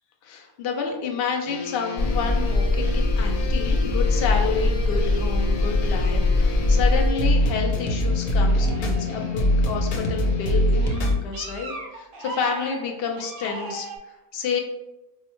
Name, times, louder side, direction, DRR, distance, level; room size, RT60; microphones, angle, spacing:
voice 1, 0.2-10.6 11.0-14.6, left 5 dB, 70° left, 2 dB, 0.5 m, -29 dB
sound 1, 1.5-11.2, left 1 dB, 90° left, 1.2 m, -25 dB
sound 2, 2.0-7.1, left 2 dB, 25° left, 0.8 m, -22 dB
sound 3, 8.4-9.7 10.3-14.0, right 1 dB, 65° right, 0.5 m, -38 dB
4.6 x 2.1 x 3.0 m, 1.0 s
omnidirectional pair, 1.6 m